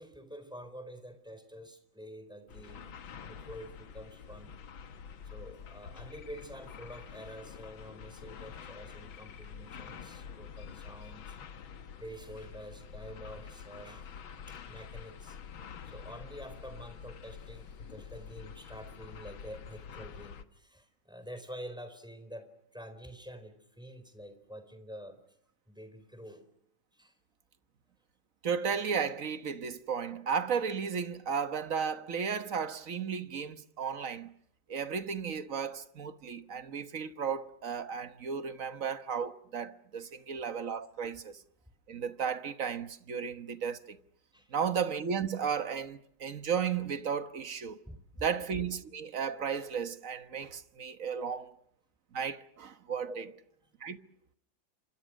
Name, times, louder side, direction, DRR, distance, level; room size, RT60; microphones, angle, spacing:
voice 1, 0.0-4.6 5.2-11.4 12.0-14.1 14.5-15.4 15.8-25.2 25.7-26.4 26.9-27.2 40.0-40.3 41.6-41.7 44.3-44.6 47.9-48.0 51.2-51.4 53.1-53.4, equal, ahead, 4.1 m, -48 dB
sound 1, 2.5-20.4, left 7 dB, 80° left, 2.1 m, -47 dB
sound 2, 6.1-6.4 6.7-7.0 9.1-9.4 9.7-10.0, left 10 dB, 40° left, 2.9 m, -56 dB
voice 2, 28.4-34.3 34.7-41.4 41.9-44.0 44.5-47.8 48.2-51.4 52.1-53.2 53.8-54.0, right 6 dB, 45° right, 1.4 m, -34 dB
30.0 x 26.0 x 6.4 m
omnidirectional pair, 2.2 m